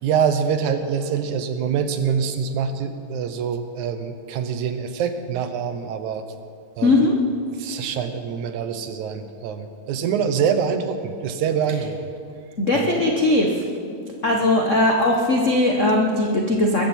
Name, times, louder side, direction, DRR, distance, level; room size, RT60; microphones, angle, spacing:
voice 1, 0.0-6.2 6.8-7.1 7.5-12.0 12.7-13.0, right 7 dB, 85° right, 8 dB, 2.4 m, -25 dB
voice 2, 6.8-7.1 12.6-13.6 14.2-16.9, left 2 dB, 60° left, 0 dB, 0.7 m, -19 dB
21.0 x 14.5 x 4.4 m, 2.4 s
omnidirectional pair, 3.3 m